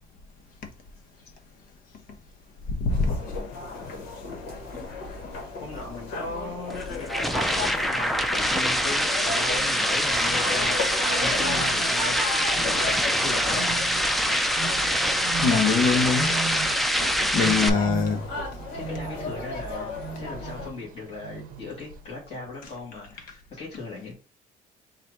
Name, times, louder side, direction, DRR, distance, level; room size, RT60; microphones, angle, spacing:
sound 1, 2.9-20.7, left 3 dB, 85° left, 1.4 m, -35 dB
voice 1, 5.6-13.8 18.7-24.1, left 3 dB, 40° left, 1.8 m, -39 dB
sound 2, 6.7-17.7, equal, ahead, 0.4 m, -24 dB
sound 3, 9.9-22.0, right 7 dB, 65° right, 0.7 m, -39 dB
voice 2, 15.4-16.3 17.3-18.2, left 5 dB, 65° left, 1.1 m, -22 dB
4.2 x 2.5 x 4.7 m
cardioid pair, 115°, 15 cm